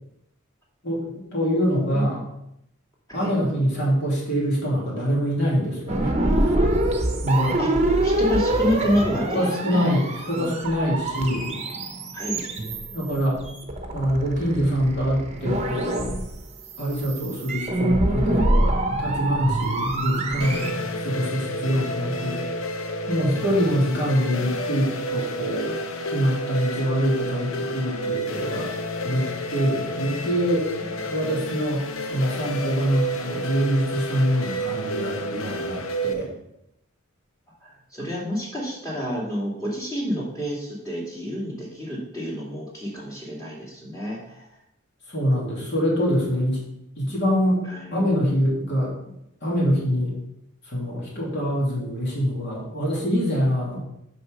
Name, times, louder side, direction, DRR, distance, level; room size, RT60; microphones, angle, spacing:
voice 1, 1.3-2.2 3.1-6.2 7.2-7.6 9.2-11.5 12.9-13.4 13.9-16.1 16.8-20.8 21.0-22.4 23.1-25.7 26.1-28.7 29.0-30.7 31.1-31.8 32.1-36.3 45.1-46.6 47.0-48.9 49.4-50.2 50.7-53.8, equal, 50° left, -5 dB, 2.7 m, -24 dB
voice 2, 1.9-2.2 3.2-3.3 7.6-7.7 8.0-9.9 10.3-10.5 12.1-12.4 20.7-21.2 27.9-28.1 30.9-31.1 37.6-44.5 47.6-47.9, equal, 15° left, -5 dB, 2.4 m, -29 dB
sound 1, 5.9-20.7, right 1 dB, 30° right, 0.9 m, -25 dB
sound 2, 20.4-36.1, equal, 70° left, 0.8 m, -30 dB
6.6 x 5.6 x 6.4 m, 0.79 s
head